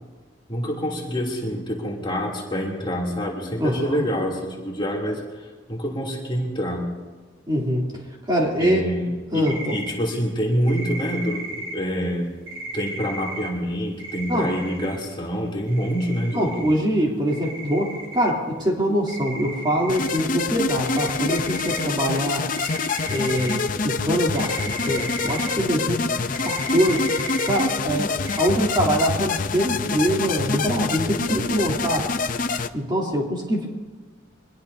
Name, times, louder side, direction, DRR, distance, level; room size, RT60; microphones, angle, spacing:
voice 1, 0.5-6.9 8.6-12.3 12.7-16.7, equal, 25° left, -3 dB, 3.0 m, -26 dB
voice 2, 3.6-4.0 7.5-7.9 8.3-8.8 9.3-9.8 14.3-14.5 16.3-22.5 23.1-26.1 26.4-27.1 27.4-32.1 32.7-33.7, equal, 20° right, -3 dB, 3.1 m, -24 dB
sound 1, 9.4-9.9 10.7-11.7 12.5-13.5 14.0-15.0 15.7-16.7 17.3-18.3 19.1-20.2 20.8-21.8 22.4-23.6 24.4-25.5 26.3-27.6 28.3-28.4, right 2 dB, 85° right, 5.5 m, -35 dB
sound 2, 19.9-32.7, left 4 dB, 45° left, 0.6 m, -26 dB
24.5 x 20.5 x 2.8 m, 1.4 s
head